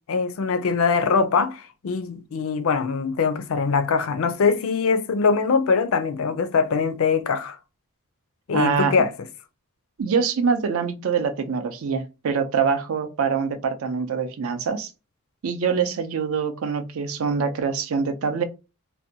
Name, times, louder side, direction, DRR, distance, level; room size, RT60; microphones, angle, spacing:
voice 1, 0.1-7.6 8.5-9.1, left 5 dB, 65° left, 0.4 m, -22 dB
voice 2, 8.5-9.0 10.0-14.9 15.4-18.4, right 6 dB, 65° right, 0.4 m, -24 dB
2.6 x 2.1 x 2.6 m
head